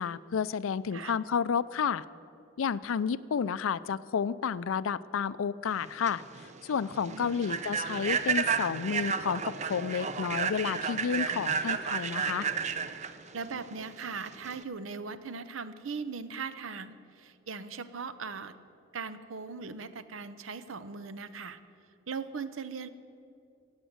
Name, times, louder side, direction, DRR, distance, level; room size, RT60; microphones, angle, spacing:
voice 1, 0.0-2.0 2.6-6.2 6.6-12.5, left 6 dB, 80° left, 17 dB, 0.4 m, -31 dB
Human voice / Train, 5.7-14.6, right 6 dB, 35° right, 0.5 m, -32 dB
voice 2, 7.1-7.4 13.3-18.6 18.9-21.6 22.1-22.9, right 5 dB, 75° right, 13 dB, 0.7 m, -39 dB
15.5 x 8.9 x 8.0 m, 2.6 s
head